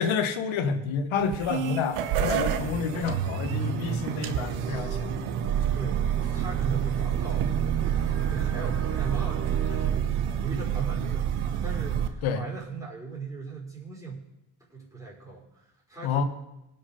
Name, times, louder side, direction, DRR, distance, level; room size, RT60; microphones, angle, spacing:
voice 1, 0.0-5.1 12.2-12.4 16.0-16.2, left 6 dB, 70° left, 10 dB, 1.3 m, -29 dB
sound 1, 1.2-12.1, right 9 dB, 80° right, 1.1 m, -28 dB
sound 2, 2.1-9.9, right 6 dB, 25° right, 1.3 m, -37 dB
voice 2, 5.7-6.1 6.3-7.5 8.0-14.2 14.7-16.3, right 4 dB, 5° right, -4 dB, 5.2 m, -37 dB
18.5 x 6.2 x 5.1 m, 0.93 s
cardioid pair, 80°, 49 cm